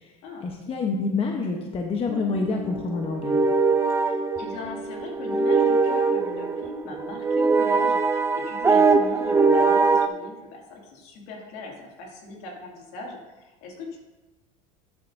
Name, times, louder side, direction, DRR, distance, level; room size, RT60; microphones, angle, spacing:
voice 1, 0.4-3.4, left 4 dB, 35° left, 2 dB, 1.0 m, -27 dB
sound 1, 2.1-10.1, right 4 dB, 15° right, 0.6 m, -22 dB
voice 2, 4.0-14.0, left 3 dB, 70° left, -1 dB, 2.5 m, -39 dB
11.5 x 8.1 x 2.7 m, 1.1 s
supercardioid pair, 100°, 17 cm